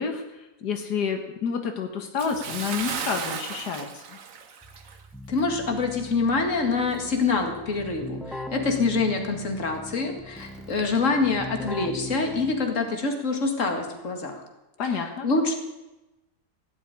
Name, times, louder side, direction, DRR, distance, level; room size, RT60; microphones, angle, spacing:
voice 1, 0.0-4.0 14.8-15.3, left 6 dB, 85° left, 5 dB, 1.9 m, -29 dB
Bathtub (filling or washing) / Splash splatter, 2.2-5.1 5.4-5.6 6.1-6.2, right 6 dB, 60° right, 1.5 m, -35 dB
Keyboard (musical), 4.6-12.9, left 1 dB, ahead, 0.5 m, -40 dB
voice 2, 5.3-14.4 15.2-15.5, left 4 dB, 50° left, 4 dB, 2.3 m, -25 dB
16.5 x 7.3 x 9.7 m, 1.0 s
omnidirectional pair, 1.7 m